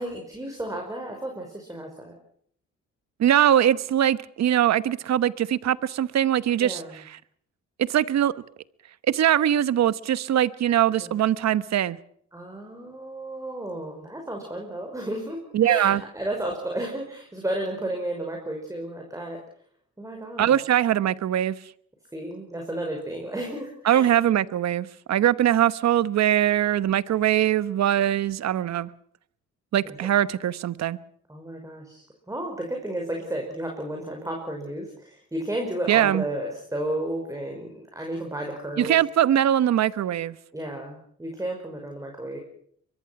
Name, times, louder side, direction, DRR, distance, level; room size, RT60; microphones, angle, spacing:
voice 1, 0.0-2.1 6.6-7.0 11.0-11.1 12.3-19.4 20.0-20.6 22.1-24.1 31.3-39.0 40.5-42.4, right 1 dB, 10° right, 5.5 m, -33 dB
voice 2, 3.2-6.8 7.8-8.3 9.1-12.0 15.5-16.0 20.4-21.6 23.9-28.9 29.7-31.0 35.9-36.2 38.8-40.4, right 11 dB, 60° right, 1.0 m, -22 dB
23.0 x 23.0 x 6.0 m
cardioid pair, 90°, 30 cm